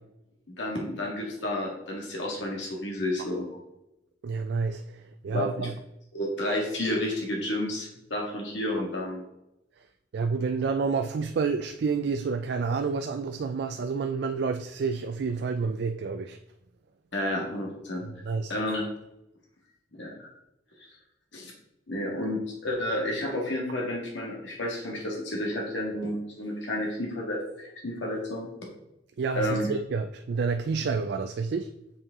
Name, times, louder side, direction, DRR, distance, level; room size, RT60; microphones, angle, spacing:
voice 1, 0.6-3.4 5.3-5.7 6.1-9.2 17.1-18.0 18.5-18.8 19.9-20.3 21.3-21.5 21.9-28.5 29.3-29.7, left 1 dB, 90° left, 1.7 m, -31 dB
voice 2, 4.2-5.0 5.2-5.7 10.1-16.4 18.2-18.5 29.2-31.7, right 5 dB, 65° right, 0.3 m, -29 dB
7.0 x 5.3 x 3.6 m
head